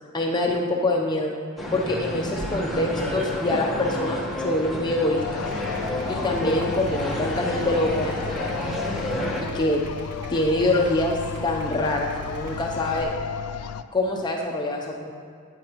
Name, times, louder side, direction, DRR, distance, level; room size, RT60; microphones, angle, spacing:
voice 1, 0.1-1.3 1.7-5.4 6.1-8.7 9.4-9.8 10.3-13.1 13.9-15.1, left 2 dB, 20° left, 0 dB, 0.6 m, -25 dB
sound 1, 1.6-9.4, left 1 dB, ahead, 1.3 m, -30 dB
sound 2, 5.2-13.8, left 7 dB, 80° left, 0.4 m, -34 dB
Idling, 5.4-13.0, right 1 dB, 60° right, 0.8 m, -42 dB
14.0 x 9.4 x 3.0 m, 2.4 s
head